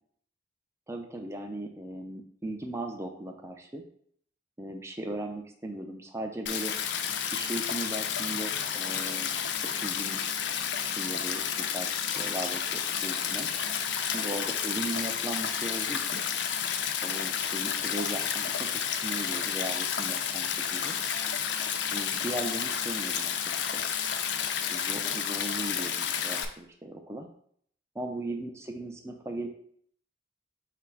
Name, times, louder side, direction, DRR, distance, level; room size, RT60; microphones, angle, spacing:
voice 1, 0.9-3.8 4.6-6.7 7.3-10.2 10.9-13.5 14.1-16.2 17.0-21.0 21.9-23.8 24.7-27.3 27.9-29.5, right 1 dB, 15° right, 3 dB, 0.4 m, -38 dB
Stream, 6.5-26.5, left 8 dB, 65° left, 0.4 m, -31 dB
5.8 x 2.0 x 4.5 m, 0.63 s
head